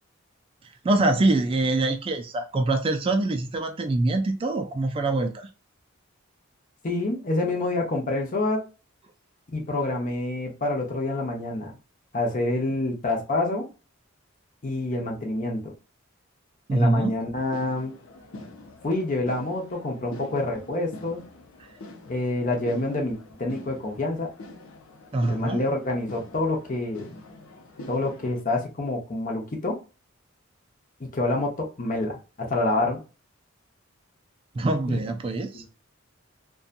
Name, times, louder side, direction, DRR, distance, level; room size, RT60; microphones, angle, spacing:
voice 1, 0.8-5.5 16.7-17.1 25.1-25.6 34.5-35.6, right 2 dB, 25° right, 0.3 m, -24 dB
voice 2, 6.8-8.6 9.5-11.7 12.1-13.7 14.6-15.7 16.7-17.9 18.8-21.2 22.1-24.3 25.3-27.2 27.9-29.8 31.0-33.0 35.5-35.6, left 2 dB, 40° left, 0.7 m, -27 dB
sound 1, 17.4-28.4, left 1 dB, 90° left, 0.6 m, -44 dB
2.7 x 2.3 x 2.5 m
head